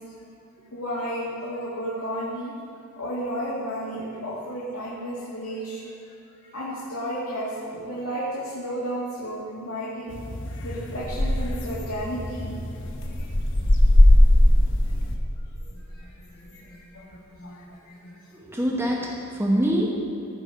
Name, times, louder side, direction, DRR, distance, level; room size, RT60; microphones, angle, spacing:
voice 1, 0.7-2.5 3.0-5.8 6.3-10.1 10.6-13.3 14.8-14.9 15.5-18.1, equal, 80° left, -8 dB, 2.1 m, -33 dB
sound 1, 10.1-15.1, left 1 dB, 55° left, 0.9 m, -20 dB
voice 2, 18.3-19.9, equal, 10° right, -1 dB, 0.9 m, -24 dB
14.5 x 6.1 x 4.9 m, 2.9 s
head